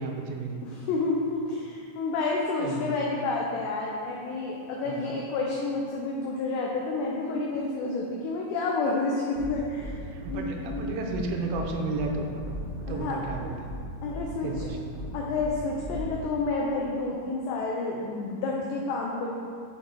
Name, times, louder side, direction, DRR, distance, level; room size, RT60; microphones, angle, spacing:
voice 1, 0.0-0.7 2.6-3.0 4.9-5.1 10.1-12.3 12.9-13.8 14.4-14.9, right 3 dB, 90° right, 2 dB, 3.3 m, -33 dB
voice 2, 0.6-10.0 10.3-11.0 12.9-13.2 14.0-14.5 15.1-19.3, left 3 dB, 85° left, -1 dB, 2.4 m, -30 dB
sound 1, 9.4-9.5 9.8-9.9 10.2-10.3 10.6-10.8 11.1-11.2 11.5-11.6 11.9-12.1 12.4-12.9 13.2-13.3 13.6-13.8 14.1-14.2 14.5-14.6 14.9-15.1 15.4-15.5 15.8-16.0, equal, 65° right, 2.3 m, -38 dB
8.2 x 5.5 x 3.7 m, 2.4 s
omnidirectional pair, 5.7 m